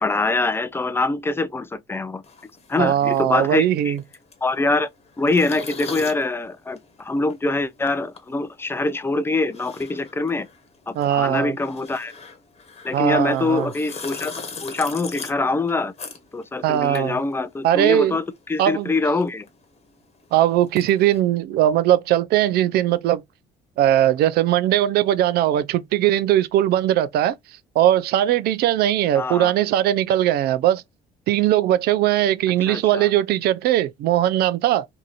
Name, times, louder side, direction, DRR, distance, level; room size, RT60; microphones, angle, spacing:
voice 1, 0.0-2.2 2.7-3.9 4.4-4.9 5.2-10.5 10.9-12.1 12.8-14.3 14.6-15.9 16.3-19.5 29.1-29.5 32.7-33.1, left 3 dB, 15° left, 0.4 m, -24 dB
sound 1, 2.2-18.0 18.3-21.2, left 4 dB, 35° left, 1.1 m, -40 dB
voice 2, 2.8-4.0 11.0-11.5 12.9-13.7 16.6-17.2 17.6-18.2 18.6-18.9 20.3-23.2 23.8-27.4 27.8-30.8 31.3-34.9, right 12 dB, 70° right, 0.4 m, -19 dB
2.9 x 2.6 x 2.3 m
cardioid pair, 110°, 17 cm